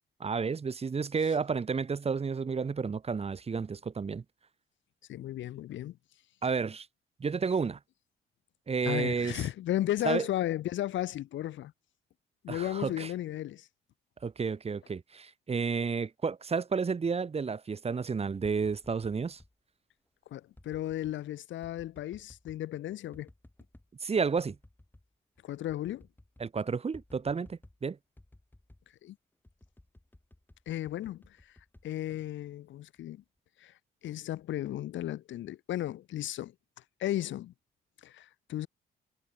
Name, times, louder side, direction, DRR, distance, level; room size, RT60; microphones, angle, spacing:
voice 1, 0.2-4.2 6.4-6.9 7.2-7.8 8.7-9.4 10.0-10.3 12.5-13.1 14.2-19.4 24.0-24.6 26.4-28.0, right 5 dB, 30° right, 1.1 m, -31 dB
voice 2, 5.1-6.0 8.8-11.7 12.4-13.7 20.3-23.3 25.4-26.1 29.0-29.2 30.7-31.2 31.8-33.2 33.6-33.7 34.0-36.5 37.0-37.5 38.0-38.7, left 13 dB, 70° left, 0.9 m, -34 dB
sound 1, 18.6-19.5 20.5-21.2 21.6-22.7 23.1-23.9 24.4-25.1 25.4-25.5 25.7-26.5 26.9-27.8 28.2-28.9 29.4-32.6 33.0-33.4, left 1 dB, 10° left, 4.9 m, -57 dB
cardioid pair, 90°, 20 cm